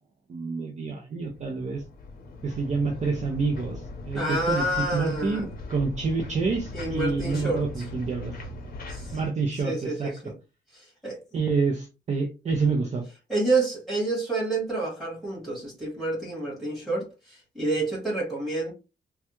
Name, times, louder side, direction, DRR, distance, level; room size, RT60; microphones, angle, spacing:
voice 1, 0.3-1.8 2.4-4.7 4.9-8.3 9.1-10.1 11.3-13.0, right 4 dB, 35° right, 0.5 m, -28 dB
sound 1, 1.2-9.3, left 2 dB, 45° left, 0.8 m, -39 dB
voice 2, 4.1-5.4 6.7-7.7 8.9-9.2 9.6-10.3 10.7-11.2 13.3-18.7, right 2 dB, ahead, 1.8 m, -28 dB
3.3 x 2.3 x 2.9 m
wide cardioid pair, 175°, 20 cm